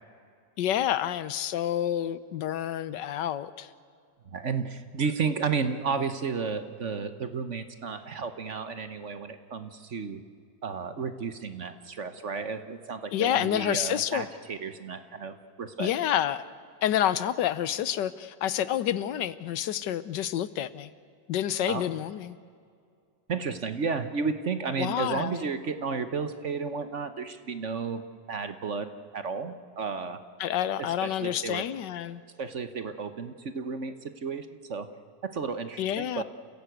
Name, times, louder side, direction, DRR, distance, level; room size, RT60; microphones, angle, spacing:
voice 1, 0.6-3.7 13.1-14.3 15.8-16.5 16.8-20.9 21.3-22.4 24.8-25.5 30.4-32.2 35.8-36.2, left 11 dB, 80° left, 16 dB, 1.4 m, -28 dB
voice 2, 4.3-10.2 10.6-15.9 21.7-21.8 23.3-28.0 28.3-30.2 30.8-30.9 31.2-31.6 32.4-34.9 35.3-36.2, right 5 dB, 50° right, 10 dB, 1.2 m, -32 dB
29.0 x 16.5 x 8.0 m, 2.2 s
omnidirectional pair, 1.9 m